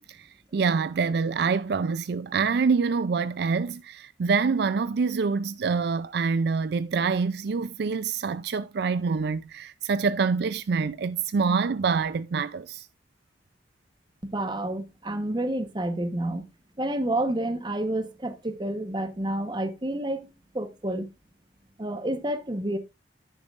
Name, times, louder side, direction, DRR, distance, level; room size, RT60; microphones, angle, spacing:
voice 1, 0.1-12.9, right 5 dB, 65° right, 0.4 m, -26 dB
voice 2, 14.2-16.5 16.8-21.1 21.8-22.8, right 1 dB, 25° right, 1.1 m, -29 dB
10.5 x 9.1 x 2.5 m
head